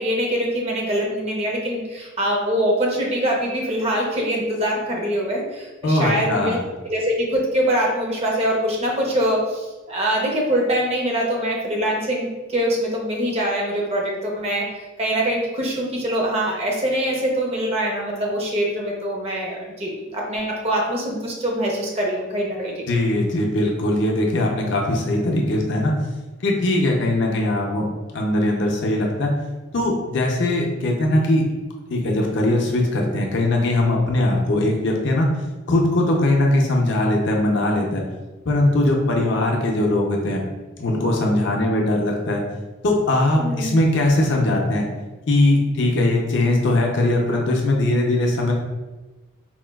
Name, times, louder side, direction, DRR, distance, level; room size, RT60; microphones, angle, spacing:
voice 1, 0.0-6.6 6.8-14.7 15.0-22.9 43.4-43.7, right 1 dB, 30° right, -1 dB, 0.5 m, -23 dB
voice 2, 5.8-6.6 22.9-25.9 26.4-27.9 28.1-29.3 29.7-31.4 31.9-35.3 35.7-38.0 38.5-40.4 40.8-42.4 42.8-44.9 45.3-48.5, left 1 dB, 60° left, 0 dB, 0.5 m, -20 dB
4.2 x 2.2 x 2.2 m, 1.2 s
head